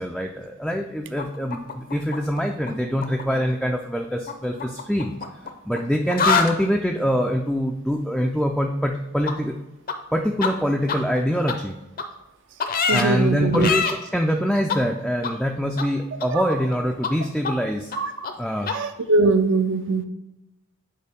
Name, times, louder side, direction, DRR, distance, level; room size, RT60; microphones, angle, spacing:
voice 1, 0.0-5.1 5.7-9.6 10.1-11.7 12.9-17.9 18.4-18.7, equal, ahead, 1 dB, 0.3 m, -24 dB
sound 1, 1.2-2.7 3.0-3.2 4.3-5.8 6.1-6.5 9.3-9.4 9.9-10.0 10.4-10.5 10.9-11.0 11.5-11.6 12.0-12.1 12.6-13.0 13.5-13.9 14.7-14.8 15.2-15.3 15.8-15.9 16.2-16.8 17.0-17.1 17.4-17.5 17.9-18.0 18.2-18.3 18.6-18.7, left 5 dB, 45° left, 0.6 m, -24 dB
voice 2, 12.8-13.7 18.0-18.1 18.7-20.0, right 3 dB, 60° right, 9 dB, 0.5 m, -21 dB
6.6 x 4.7 x 3.5 m, 0.96 s
head